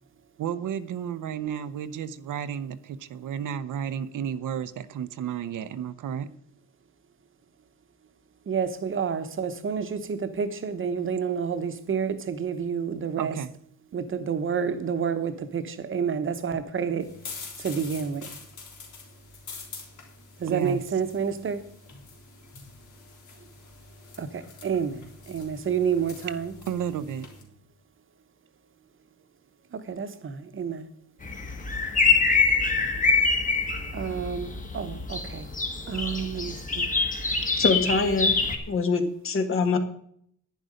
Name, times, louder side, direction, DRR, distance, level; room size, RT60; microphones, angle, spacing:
voice 1, 0.4-6.3 13.2-13.5 20.5-20.8 26.7-27.3, right 8 dB, 85° right, 12 dB, 0.9 m, -32 dB
voice 2, 8.5-13.3 13.9-17.1 17.6-18.3 20.4-21.6 24.2-26.5 29.7-30.9 33.9-35.5 35.9-36.9, right 6 dB, 40° right, 10 dB, 1.1 m, -29 dB
sound 1, 17.0-27.4, left 4 dB, 75° left, 3.8 m, -45 dB
sound 2, 31.2-38.6, left 4 dB, 25° left, 1.7 m, -25 dB
voice 3, 37.6-38.3 38.7-39.8, left 4 dB, 45° left, 8 dB, 1.5 m, -24 dB
10.5 x 10.5 x 5.1 m, 0.64 s
wide cardioid pair, 170°, 30 cm